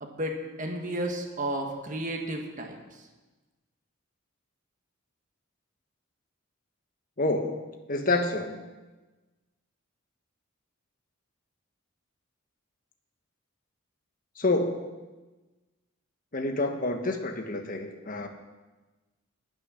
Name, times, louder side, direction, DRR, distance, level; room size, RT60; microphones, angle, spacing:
voice 1, 0.0-2.8, right 1 dB, 35° right, 2 dB, 1.5 m, -32 dB
voice 2, 7.2-8.6 14.4-14.9 16.3-18.3, left 2 dB, 40° left, 5 dB, 1.3 m, -28 dB
19.5 x 6.6 x 6.3 m, 1.2 s
head